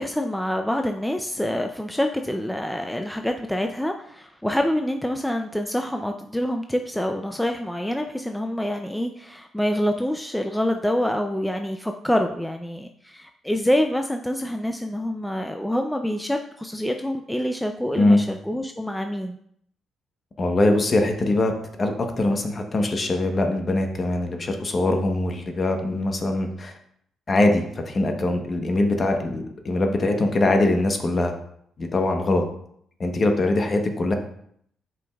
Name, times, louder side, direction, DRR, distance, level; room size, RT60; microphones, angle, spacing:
voice 1, 0.0-19.4, left 1 dB, 5° left, 5 dB, 0.4 m, -26 dB
voice 2, 20.4-21.5 21.8-26.7 27.3-31.4 31.8-32.4 33.0-34.1, left 2 dB, 35° left, 4 dB, 1.0 m, -22 dB
8.2 x 5.1 x 2.4 m, 0.69 s
cardioid pair, 90°, 0 cm